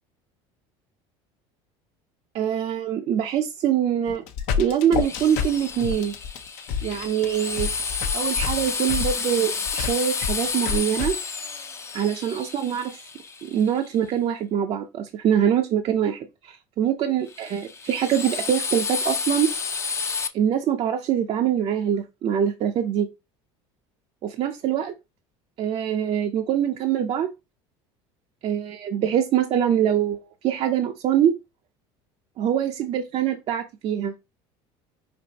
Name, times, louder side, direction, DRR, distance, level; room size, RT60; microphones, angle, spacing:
voice 1, 2.3-4.2 4.6-6.1 6.8-7.7 8.1-11.2 11.9-13.0 13.4-19.5 20.3-23.1 24.2-24.9 25.6-27.3 28.4-31.4 32.4-34.1, right 9 dB, 45° right, 0.5 m, -24 dB
sound 1, 4.1-11.1, left 7 dB, 65° left, 0.7 m, -29 dB
Drill, 4.9-13.9 17.3-20.3, left 5 dB, 20° left, 0.5 m, -30 dB
5.2 x 2.7 x 2.8 m
supercardioid pair, 110°, 13 cm